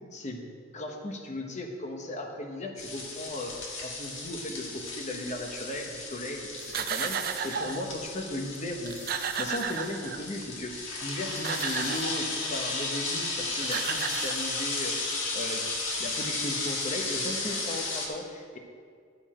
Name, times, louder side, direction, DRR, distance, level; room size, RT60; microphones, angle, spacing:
voice 1, 0.1-0.4 0.7-6.5 6.8-15.7 16.0-18.6, left 1 dB, 40° left, 2 dB, 1.1 m, -36 dB
sound 1, 2.8-18.1, left 3 dB, 80° left, 1.6 m, -34 dB
sound 2, 6.6-7.9 8.6-8.7 8.9-10.4 11.1-12.2 13.3-13.4 13.6-14.9, right 7 dB, 50° right, 0.5 m, -33 dB
12.0 x 7.0 x 4.4 m, 2.1 s
head